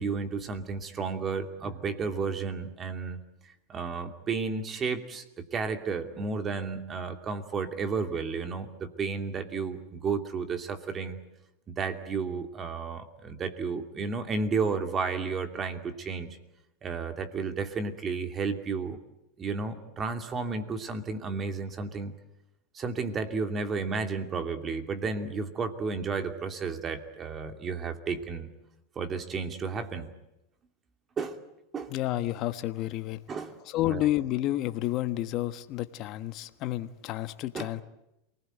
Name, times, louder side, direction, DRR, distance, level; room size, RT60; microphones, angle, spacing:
voice 1, 0.0-3.2 3.7-5.2 5.5-11.2 11.7-16.4 16.8-19.0 19.4-22.1 22.7-28.5 29.0-30.1 31.2-31.4 31.7-31.9 33.3-33.5 33.9-34.0 37.5-37.7, right 4 dB, 25° right, 7 dB, 2.7 m, -32 dB
voice 2, 31.9-33.2 33.6-37.8, left 15 dB, 45° left, 11 dB, 1.3 m, -30 dB
28.0 x 20.0 x 9.2 m, 0.89 s
supercardioid pair, 120°, 0 cm